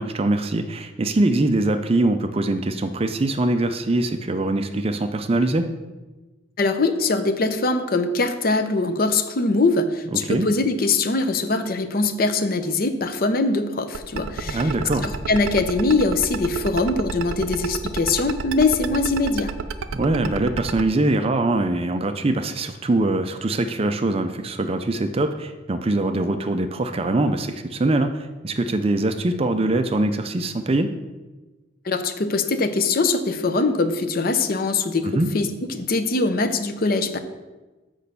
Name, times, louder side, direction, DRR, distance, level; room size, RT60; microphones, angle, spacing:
voice 1, 0.0-5.7 10.1-10.5 14.4-15.1 19.9-30.9 35.1-35.3, right 2 dB, 30° right, 9 dB, 0.4 m, -23 dB
voice 2, 6.6-14.7 15.0-19.5 31.8-37.2, left 3 dB, 45° left, 9 dB, 0.6 m, -22 dB
sound 1, 13.9-20.8, right 5 dB, 85° right, 0.5 m, -29 dB
6.3 x 5.4 x 6.8 m, 1.2 s
head